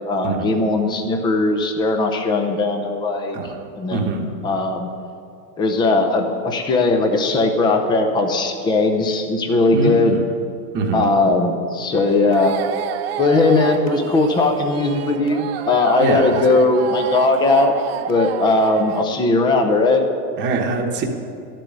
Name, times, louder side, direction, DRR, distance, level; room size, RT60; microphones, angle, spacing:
voice 1, 0.1-3.4 3.8-4.9 5.6-10.1 10.9-12.5 13.2-17.7 18.1-20.0, left 2 dB, 10° left, 5 dB, 0.5 m, -18 dB
voice 2, 3.9-4.2 9.7-10.2 10.7-11.1 16.0-16.4 20.4-21.0, right 3 dB, 20° right, 2 dB, 1.1 m, -23 dB
sound 1, 11.9-19.0, right 10 dB, 40° right, 0.5 m, -30 dB
12.5 x 7.6 x 9.6 m, 2.4 s
supercardioid pair, 155°, 49 cm